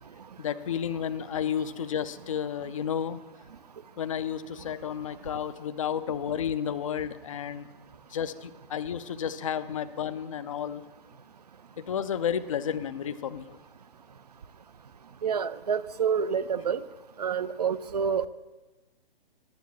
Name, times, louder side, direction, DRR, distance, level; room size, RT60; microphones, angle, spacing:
voice 1, 0.4-3.2 4.0-7.7 8.1-10.8 11.8-13.6, left 8 dB, 35° left, 12 dB, 0.4 m, -32 dB
voice 2, 15.2-16.8 17.2-18.3, right 7 dB, 45° right, 14 dB, 0.4 m, -28 dB
10.5 x 7.1 x 7.1 m, 1.2 s
figure-of-eight pair, 135°, 30 cm